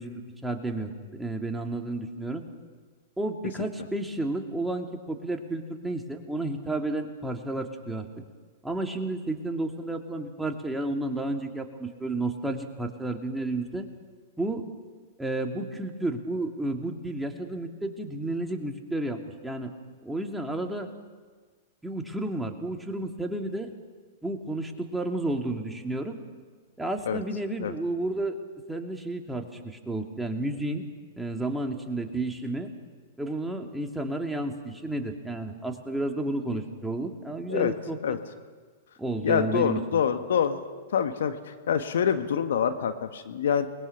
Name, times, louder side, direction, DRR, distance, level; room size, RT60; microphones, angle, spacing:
voice 1, 0.0-2.4 3.2-8.1 8.6-13.9 14.4-14.6 15.2-19.7 20.0-20.9 21.8-23.7 24.2-26.2 26.8-28.4 28.7-30.8 31.2-32.7 33.2-38.2 39.0-40.0, right 2 dB, 5° right, 3 dB, 2.7 m, -31 dB
voice 2, 39.2-40.6 40.9-43.7, left 8 dB, 65° left, 8 dB, 1.6 m, -26 dB
29.5 x 21.0 x 6.0 m, 1.5 s
figure-of-eight pair, 100°, 0 cm